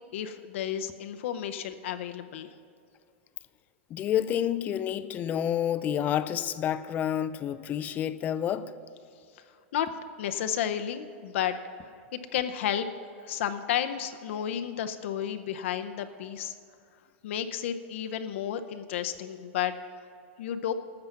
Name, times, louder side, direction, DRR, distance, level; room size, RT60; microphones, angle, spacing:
voice 1, 0.1-2.5 9.4-9.5 9.7-9.9 10.2-11.6 12.1-12.9 13.2-16.5 17.2-19.7 20.4-20.7, left 10 dB, 65° left, 0.6 m, -32 dB
voice 2, 3.9-8.7, left 10 dB, 25° left, 0.4 m, -29 dB
12.5 x 7.7 x 5.9 m
supercardioid pair, 150°, 7 cm